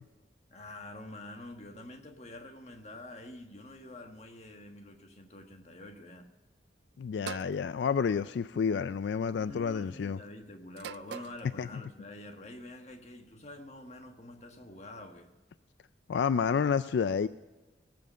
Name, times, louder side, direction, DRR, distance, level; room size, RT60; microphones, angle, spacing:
voice 1, 0.5-6.3 9.3-15.3, left 1 dB, 40° left, 4 dB, 1.5 m, -47 dB
voice 2, 7.0-10.2 11.6-11.8 16.1-17.3, left 6 dB, 75° left, 14 dB, 0.3 m, -29 dB
sound 1, 7.3-7.6 8.8-9.1 10.8-11.4, right 8 dB, 70° right, 0.3 m, -42 dB
19.0 x 7.8 x 5.4 m, 1.2 s
head